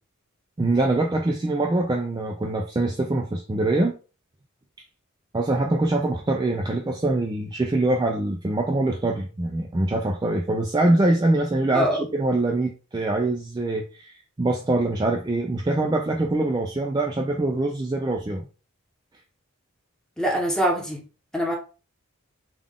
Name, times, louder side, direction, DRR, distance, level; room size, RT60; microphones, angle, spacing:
voice 1, 0.6-3.9 5.3-18.4, right 2 dB, 20° right, 0.3 m, -24 dB
voice 2, 11.7-12.1 20.2-21.0 21.3-21.6, equal, 5° left, 0.9 m, -23 dB
3.6 x 2.4 x 3.5 m
head